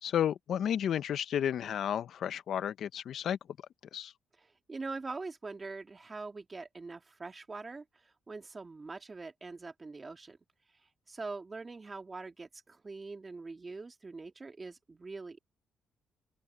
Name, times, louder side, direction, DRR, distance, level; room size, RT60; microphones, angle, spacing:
voice 1, 0.0-3.4 3.9-4.1, left 9 dB, 65° left, 0.8 m, -32 dB
voice 2, 4.4-10.4 11.1-15.4, right 3 dB, 25° right, 2.5 m, -43 dB
open air
cardioid pair, 90°, 0 cm